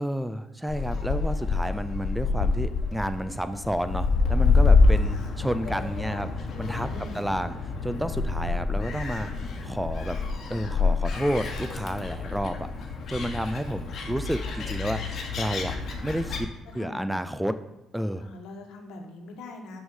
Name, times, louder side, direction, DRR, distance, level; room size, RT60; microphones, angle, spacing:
voice 1, 0.0-6.3 6.6-6.9 7.1-7.6 7.8-9.3 9.6-10.2 10.5-12.6 13.1-15.7 16.0-16.5 16.7-17.6 17.9-18.3, equal, 5° right, 11 dB, 0.4 m, -30 dB
Gull seagull, 0.7-16.4, left 4 dB, 55° left, 1.3 m, -27 dB
voice 2, 6.9-7.2 16.7-17.2 18.2-19.8, left 2 dB, 85° left, 3 dB, 1.3 m, -42 dB
6.1 x 5.5 x 6.4 m, 0.98 s
cardioid pair, 120°, 0 cm